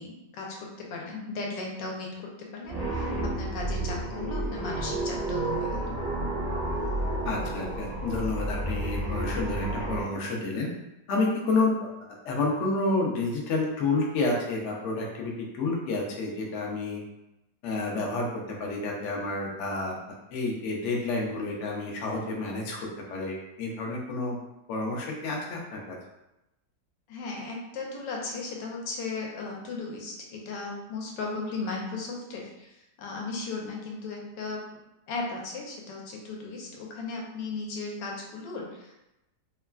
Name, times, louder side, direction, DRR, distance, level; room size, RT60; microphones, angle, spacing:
voice 1, 0.0-6.0 27.1-32.7 33.0-34.6 35.1-38.9, left 3 dB, 90° left, -1 dB, 1.3 m, -36 dB
sound 1, 2.7-10.1, right 1 dB, 65° right, 0.5 m, -31 dB
voice 2, 7.2-10.7 11.1-17.0 17.6-20.0 20.3-22.8 23.1-24.4 24.7-26.0, left 3 dB, 65° left, -2 dB, 0.7 m, -29 dB
3.0 x 2.3 x 2.3 m, 0.91 s
omnidirectional pair, 1.9 m